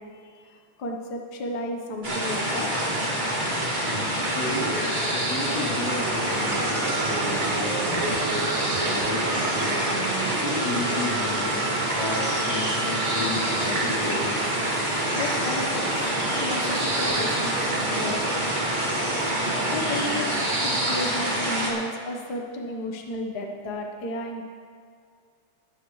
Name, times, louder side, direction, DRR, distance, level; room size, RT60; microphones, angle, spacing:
voice 1, 0.0-2.7 15.1-15.7 16.4-18.2 19.7-20.3 20.6-24.4, left 1 dB, 50° left, 1 dB, 1.2 m, -33 dB
sound 1, 2.0-21.7, right 1 dB, 15° right, 2.1 m, -26 dB
voice 2, 4.2-8.5 8.8-9.8 10.4-11.6 11.9-14.4 17.1-17.2, left 2 dB, 70° left, -7 dB, 5.2 m, -33 dB
sound 2, 4.7-21.1, right 2 dB, 50° right, 0.8 m, -35 dB
sound 3, 6.4-15.3, right 8 dB, 80° right, 2.2 m, -37 dB
22.0 x 10.0 x 3.2 m, 2.2 s
omnidirectional pair, 3.4 m